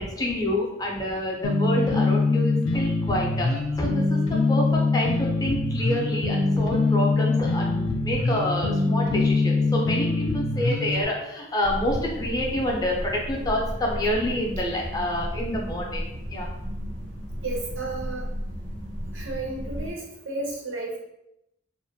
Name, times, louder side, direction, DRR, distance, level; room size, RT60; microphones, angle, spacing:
voice 1, 0.0-3.5 3.8-16.5, left 1 dB, 20° left, -1 dB, 0.4 m, -28 dB
sound 1, 1.4-11.0, left 3 dB, 90° left, 0.4 m, -23 dB
sound 2, 11.6-19.9, equal, 40° right, 0.4 m, -34 dB
voice 2, 17.4-18.2 19.1-20.0 20.3-21.0, right 2 dB, 85° right, -1 dB, 0.7 m, -32 dB
2.4 x 2.1 x 2.6 m, 0.82 s
head